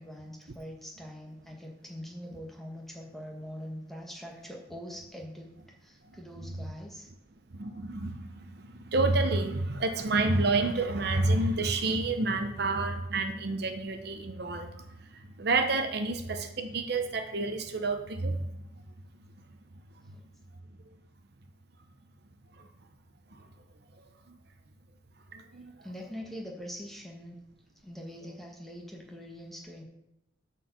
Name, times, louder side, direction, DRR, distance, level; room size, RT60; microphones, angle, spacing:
voice 1, 0.0-5.5 5.8-7.1 25.8-27.4 27.8-29.8, equal, ahead, 0 dB, 1.4 m, -43 dB
voice 2, 7.5-8.3 8.6-14.7 15.4-18.4 25.3-25.7, right 3 dB, 55° right, 7 dB, 0.8 m, -29 dB
9.4 x 4.6 x 7.2 m, 0.87 s
head